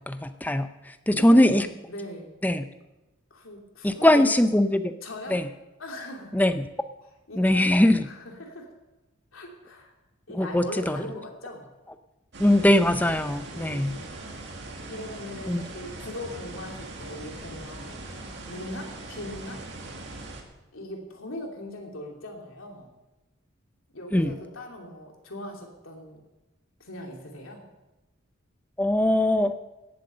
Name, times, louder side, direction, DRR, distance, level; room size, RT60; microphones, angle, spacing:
voice 1, 0.1-0.7 1.1-1.7 2.4-2.6 3.8-4.9 5.3-5.4 6.3-6.6 7.4-8.0 10.4-11.0 12.4-13.9 15.5-15.6 24.1-24.3 28.8-29.5, left 1 dB, 10° left, 10 dB, 0.5 m, -21 dB
voice 2, 1.1-2.3 3.3-4.6 5.0-5.4 5.8-6.4 7.0-7.8 8.0-8.7 9.3-9.9 10.3-11.7 13.5-14.2 14.8-19.6 20.7-22.9 23.9-26.2 26.8-27.7, left 1 dB, 85° left, 1 dB, 2.8 m, -40 dB
sound 1, 12.3-20.4, right 2 dB, 60° right, 1.9 m, -40 dB
17.5 x 7.8 x 6.7 m, 1.0 s
head